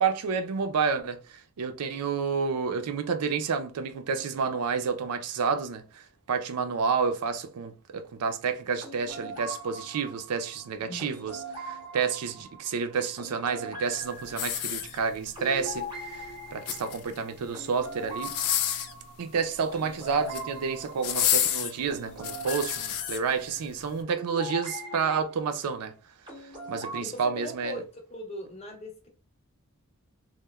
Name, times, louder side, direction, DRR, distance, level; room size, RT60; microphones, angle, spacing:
voice 1, 0.0-11.4 11.7-18.4 19.2-25.9 26.7-27.8, right 5 dB, 90° right, 0.4 m, -30 dB
sound 1, 8.8-25.2 26.3-27.0, right 1 dB, 20° right, 0.6 m, -41 dB
sound 2, 14.3-15.3 16.4-17.2 18.1-19.0 20.1-20.5 21.0-23.2 23.8-23.9, left 10 dB, 85° left, 0.4 m, -29 dB
voice 2, 27.0-29.1, left 1 dB, 25° left, 0.6 m, -40 dB
3.0 x 2.0 x 2.2 m
head